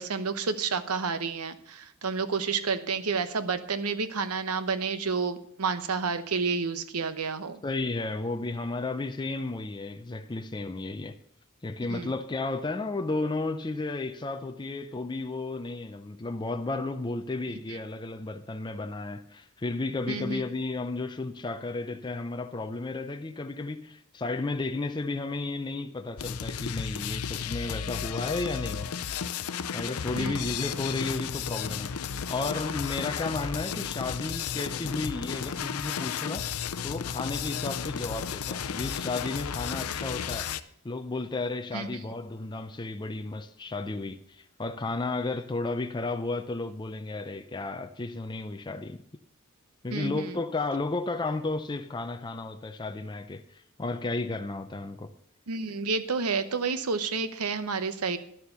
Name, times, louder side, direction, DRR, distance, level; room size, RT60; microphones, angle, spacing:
voice 1, 0.0-7.6 11.9-12.1 20.1-20.4 30.1-30.5 41.7-41.9 49.9-50.4 55.5-58.2, right 4 dB, 80° right, 0.9 m, -30 dB
voice 2, 7.6-11.2 11.6-29.0 29.7-32.0 32.3-36.5 36.8-40.5 40.8-49.0 49.8-55.1, left 3 dB, 20° left, 0.5 m, -33 dB
sound 1, 26.2-40.6, left 7 dB, 75° left, 0.6 m, -33 dB
11.0 x 7.0 x 6.8 m
head